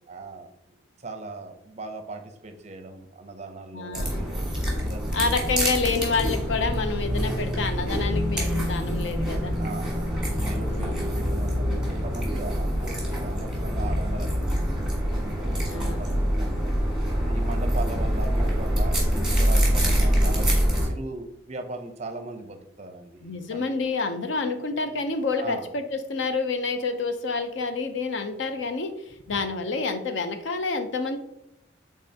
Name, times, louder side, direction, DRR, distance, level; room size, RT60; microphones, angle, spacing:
voice 1, 0.1-4.4 4.8-5.7 9.6-16.8 17.2-23.8 25.4-25.7 29.3-29.4, right 2 dB, 35° right, 6 dB, 0.5 m, -39 dB
voice 2, 3.7-4.2 5.1-9.5 10.7-11.2 15.6-16.1 23.2-31.2, left 4 dB, 65° left, 7 dB, 0.5 m, -28 dB
sound 1, 3.9-20.9, equal, ahead, 1.2 m, -25 dB
5.4 x 3.6 x 2.8 m, 0.82 s
head